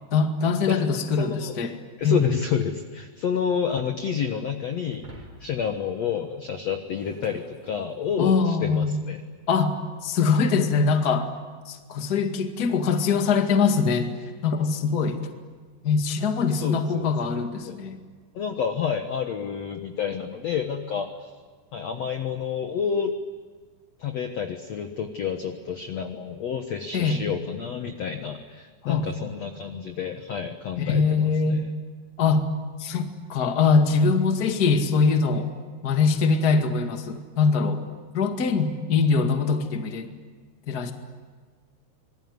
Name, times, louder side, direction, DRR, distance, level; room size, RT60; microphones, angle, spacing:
voice 1, 0.1-1.7 2.0-2.2 8.2-9.0 9.5-9.7 10.0-11.3 11.7-14.1 14.4-15.2 15.8-18.0 26.9-27.2 28.8-29.0 30.8-31.7 32.2-32.5 32.8-35.5 35.8-37.8 38.1-40.1 40.7-40.9, left 5 dB, 35° left, 5 dB, 1.6 m, -22 dB
voice 2, 1.2-1.5 2.0-5.1 5.4-9.2 16.6-17.1 17.6-17.8 18.3-21.3 21.7-23.1 24.0-31.7, left 7 dB, 60° left, 6 dB, 1.8 m, -29 dB
Shatter, 4.9-8.4, right 2 dB, 40° right, 5.1 m, -50 dB
26.5 x 21.0 x 9.6 m, 1.5 s
omnidirectional pair, 4.8 m